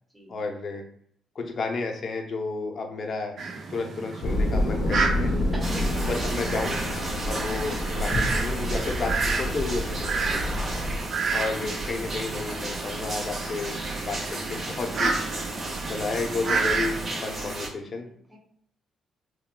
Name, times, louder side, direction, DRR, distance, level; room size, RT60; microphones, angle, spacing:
voice 1, 0.3-0.8 1.4-3.3 3.7-5.3 6.0-6.8 7.3-10.5 11.3-15.3 15.9-18.1, left 3 dB, 50° left, 4 dB, 0.6 m, -32 dB
Fowl, 3.4-17.1, right 4 dB, 60° right, 0.5 m, -32 dB
sound 1, 4.2-11.0, left 1 dB, 85° left, 0.7 m, -28 dB
voice 2, 5.2-6.1 8.1-8.3 10.2-10.8 17.8-18.4, right 1 dB, ahead, -4 dB, 1.1 m, -44 dB
sound 2, 5.6-17.7, right 2 dB, 40° right, 1.4 m, -33 dB
3.7 x 2.2 x 2.2 m, 0.65 s
cardioid pair, 90°, 0 cm